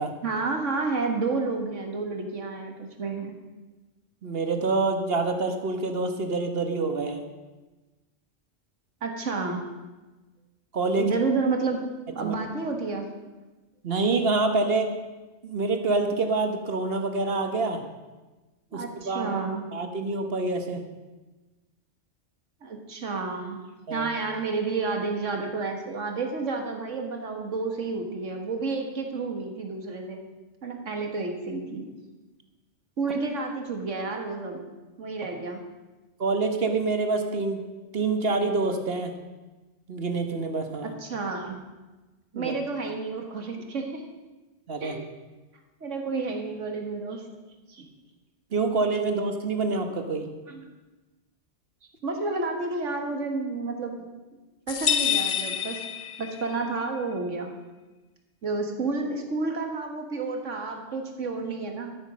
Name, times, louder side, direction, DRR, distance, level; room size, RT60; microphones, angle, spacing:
voice 1, 0.2-3.4 9.0-9.6 11.0-13.1 18.7-19.7 22.6-30.2 30.6-31.9 33.0-34.7 35.0-35.6 40.8-41.6 42.4-44.1 44.8-45.0 45.8-47.3 47.7-47.9 50.5-50.7 52.0-54.1 54.7-55.8 56.2-57.5 58.4-62.0, right 3 dB, 80° right, 4 dB, 1.9 m, -30 dB
voice 2, 4.2-7.2 10.7-11.1 12.2-12.3 13.8-14.9 15.4-17.8 18.7-19.3 19.7-20.8 23.9-24.1 36.2-37.6 37.9-39.1 39.9-40.9 42.3-42.5 44.7-45.0 48.5-50.3, right 3 dB, 55° right, 6 dB, 1.4 m, -26 dB
sound 1, 54.7-56.6, left 9 dB, 50° left, 0.6 m, -27 dB
13.0 x 8.9 x 6.2 m, 1.2 s
omnidirectional pair, 1.3 m